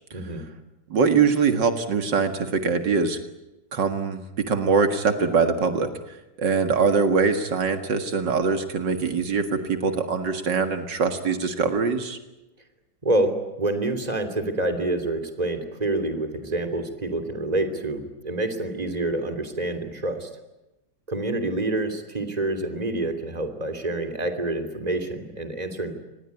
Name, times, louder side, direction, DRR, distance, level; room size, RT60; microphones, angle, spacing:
voice 1, 0.1-0.5 13.0-20.3 21.1-25.9, right 2 dB, 20° right, 8 dB, 3.1 m, -27 dB
voice 2, 0.9-3.2 3.7-5.9 6.4-12.2, right 5 dB, 80° right, 8 dB, 2.5 m, -23 dB
26.5 x 20.0 x 9.8 m, 0.96 s
omnidirectional pair, 1.9 m